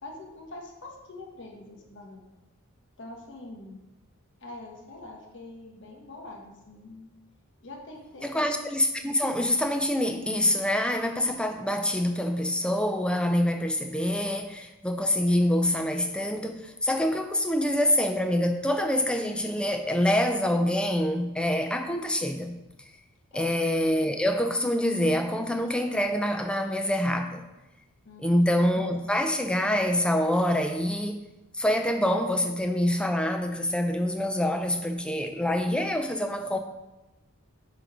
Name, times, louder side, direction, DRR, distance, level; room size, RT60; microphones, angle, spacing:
voice 1, 0.0-2.3 3.0-3.8 4.4-7.1 7.6-8.4 23.3-23.5 28.0-28.5, left 2 dB, 55° left, 0 dB, 1.1 m, -44 dB
voice 2, 8.2-22.6 23.3-27.4 28.2-31.2 31.5-36.6, left 1 dB, 5° left, 5 dB, 0.5 m, -26 dB
8.0 x 3.8 x 4.8 m, 1.0 s
head